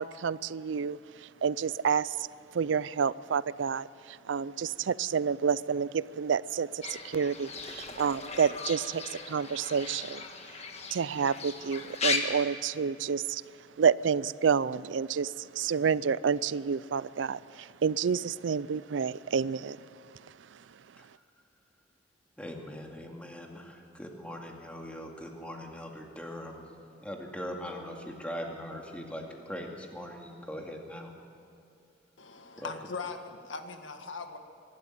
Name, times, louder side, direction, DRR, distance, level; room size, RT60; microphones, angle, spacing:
voice 1, 0.0-2.3 2.5-10.2 10.9-13.4 13.8-19.8, right 6 dB, 80° right, 19 dB, 0.4 m, -29 dB
Fowl / Bird, 6.8-12.2, left 4 dB, 35° left, 1.5 m, -37 dB
voice 2, 22.4-26.6 27.0-31.1 32.6-32.7, equal, 5° left, 1 dB, 2.3 m, -41 dB
voice 3, 32.2-34.4, left 4 dB, 90° left, 6 dB, 1.6 m, -40 dB
24.5 x 12.5 x 9.5 m, 2.5 s
head